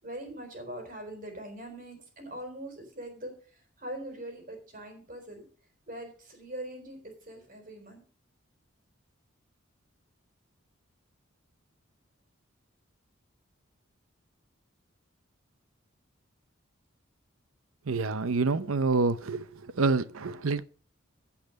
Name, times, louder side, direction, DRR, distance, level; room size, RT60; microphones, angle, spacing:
voice 1, 0.0-3.3 3.8-5.5 5.9-8.0, right 1 dB, 40° right, 4.0 m, -42 dB
voice 2, 17.9-19.5 19.8-20.6, right 3 dB, 85° right, 0.7 m, -27 dB
15.5 x 5.9 x 5.3 m
head